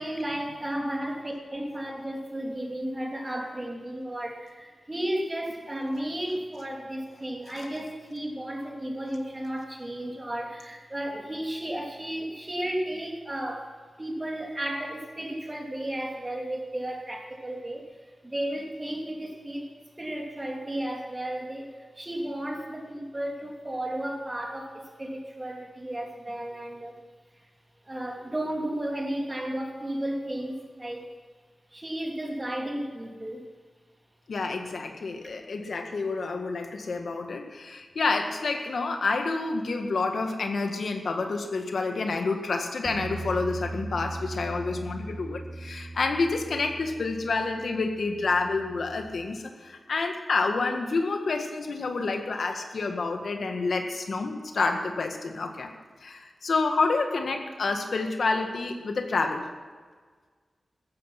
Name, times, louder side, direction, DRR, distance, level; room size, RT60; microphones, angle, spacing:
voice 1, 0.0-13.7 14.0-18.0 18.2-19.7 20.0-21.7 22.0-27.0 27.8-31.1 31.7-33.5 35.2-35.3, right 1 dB, 20° right, 0 dB, 2.8 m, -33 dB
voice 2, 34.3-55.7 56.0-59.5, left 3 dB, 75° left, 4 dB, 1.7 m, -28 dB
Bass guitar, 42.8-49.1, right 2 dB, ahead, 2.6 m, -39 dB
16.0 x 14.0 x 5.9 m, 1.5 s
wide cardioid pair, 125°, 0 cm